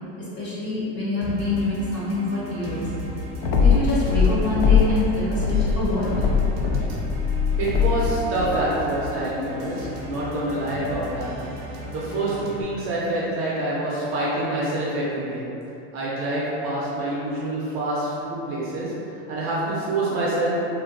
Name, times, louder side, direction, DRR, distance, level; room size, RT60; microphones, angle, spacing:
voice 1, 0.4-2.9 3.6-6.1, left 2 dB, 30° left, -9 dB, 0.8 m, -25 dB
sound 1, 1.2-12.6, equal, 90° right, 0.6 m, -35 dB
sound 2, 3.4-5.0 5.3-8.1, left 6 dB, 70° left, 0.5 m, -20 dB
voice 2, 7.6-11.3 11.7-15.4 15.9-20.6, right 1 dB, 35° right, -6 dB, 0.5 m, -26 dB
2.7 x 2.5 x 2.5 m, 2.9 s
supercardioid pair, 145°, 37 cm